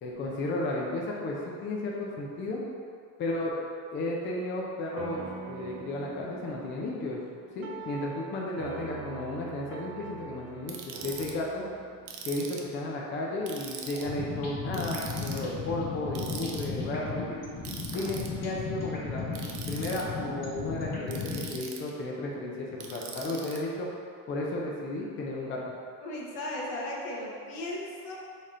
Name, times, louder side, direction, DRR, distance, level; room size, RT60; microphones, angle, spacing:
voice 1, 0.0-2.6 3.2-3.5 3.9-7.2 7.5-11.6 12.2-17.2 17.9-19.3 19.7-23.9 24.3-25.6, left 2 dB, 25° left, -3 dB, 0.5 m, -33 dB
sound 1, 5.0-13.7, right 6 dB, 35° right, 0.5 m, -44 dB
Ratchet pawl, 10.7-11.3 12.1-12.7 13.5-14.1 14.7-15.4 16.2-16.7 17.7-18.3 19.3-20.0 21.1-21.9 22.8-23.6, right 7 dB, 65° right, 0.7 m, -41 dB
sound 2, 13.9-21.6, left 4 dB, 45° left, 1.5 m, -35 dB
voice 2, 26.0-28.2, left 1 dB, 70° left, -4 dB, 1.2 m, -36 dB
4.1 x 3.5 x 3.7 m, 2.2 s
supercardioid pair, 130°, 44 cm